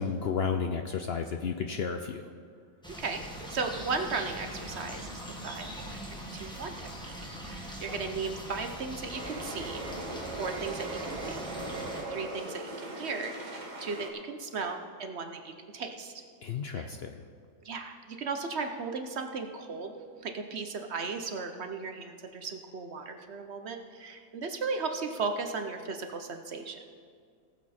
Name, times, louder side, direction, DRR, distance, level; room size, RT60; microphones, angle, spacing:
voice 1, 0.0-2.2 16.4-17.2, left 6 dB, 60° left, 6 dB, 0.7 m, -32 dB
sound 1, 2.8-12.0, equal, 5° left, 1.5 m, -42 dB
voice 2, 3.5-7.1 7.4-9.8 10.4-11.5 12.1-13.3 13.8-16.1 16.7-16.9 17.6-19.9 20.2-26.8, right 4 dB, 55° right, 6 dB, 1.0 m, -36 dB
sound 2, 9.1-14.1, right 2 dB, 35° right, 1.2 m, -39 dB
18.5 x 7.4 x 4.3 m, 2.2 s
omnidirectional pair, 1.5 m